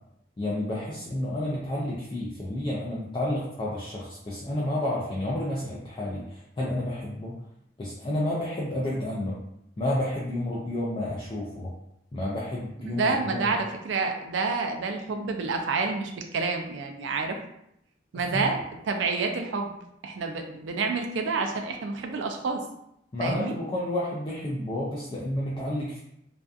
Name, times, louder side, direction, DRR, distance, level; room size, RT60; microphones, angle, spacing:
voice 1, 0.4-7.3 7.8-9.4 9.8-11.7 12.1-13.5 18.1-18.5 23.1-26.0, left 1 dB, 25° left, -6 dB, 0.4 m, -30 dB
voice 2, 12.9-17.4 18.1-18.6 18.8-19.7 20.0-22.6 23.2-23.5, right 4 dB, 80° right, 4 dB, 0.4 m, -28 dB
2.6 x 2.3 x 2.3 m, 0.79 s
head